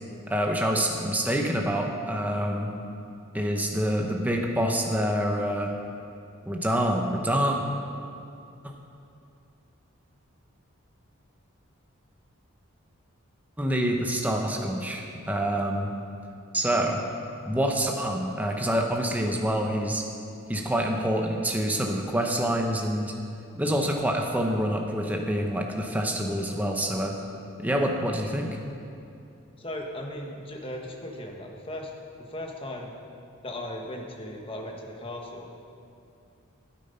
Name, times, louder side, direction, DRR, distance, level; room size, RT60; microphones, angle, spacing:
voice 1, 0.3-2.7 3.3-5.7 6.5-7.6 13.6-15.9 16.5-17.0 17.5-20.0 20.5-23.1 23.5-27.1 27.6-28.6, equal, 5° right, 1 dB, 0.8 m, -26 dB
voice 2, 29.6-31.9 32.2-32.9 33.4-35.5, left 1 dB, 25° left, 1 dB, 1.3 m, -37 dB
12.5 x 9.0 x 5.6 m, 2.6 s
head